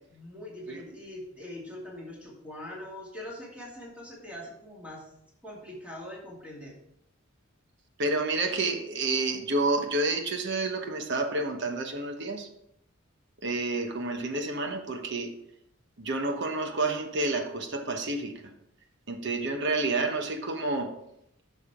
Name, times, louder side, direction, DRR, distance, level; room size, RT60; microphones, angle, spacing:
voice 1, 0.1-5.1 5.4-6.7, left 1 dB, 5° right, -4 dB, 2.6 m, -42 dB
voice 2, 8.0-12.5 13.4-15.3 16.0-18.3 19.1-20.9, right 2 dB, 55° right, 5 dB, 1.1 m, -29 dB
10.5 x 6.6 x 3.7 m, 0.77 s
head